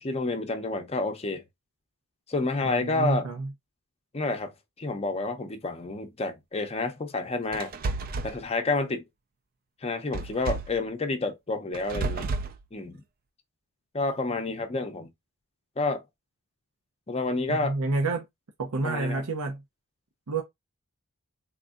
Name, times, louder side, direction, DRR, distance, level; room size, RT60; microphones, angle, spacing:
voice 1, 0.0-1.4 2.3-3.3 4.1-4.5 4.8-7.7 8.2-9.0 9.8-12.3 12.7-13.0 13.9-15.1 15.8-16.0 17.1-17.8 18.8-19.2, left 3 dB, 30° left, 0.6 m, -29 dB
voice 2, 2.6-3.5 17.5-18.2 18.6-19.6 20.3-20.4, right 3 dB, 80° right, 0.7 m, -29 dB
sound 1, 7.5-8.4 10.1-10.8 11.7-12.6, right 3 dB, 40° right, 0.4 m, -31 dB
3.6 x 2.6 x 2.3 m
head